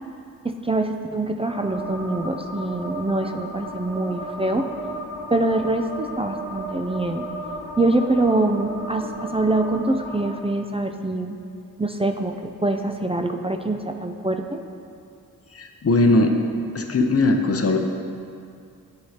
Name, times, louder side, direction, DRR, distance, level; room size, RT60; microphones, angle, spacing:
voice 1, 0.4-4.7 5.3-7.3 7.8-11.4 11.8-12.4 12.6-14.6, right 2 dB, 15° right, 5 dB, 0.3 m, -24 dB
sound 1, 1.5-10.4, equal, 80° left, 1.0 m, -35 dB
voice 2, 15.5-16.4 16.7-17.8, left 2 dB, 40° left, 4 dB, 0.6 m, -19 dB
10.5 x 4.7 x 2.8 m, 2.4 s
wide cardioid pair, 65°, 37 cm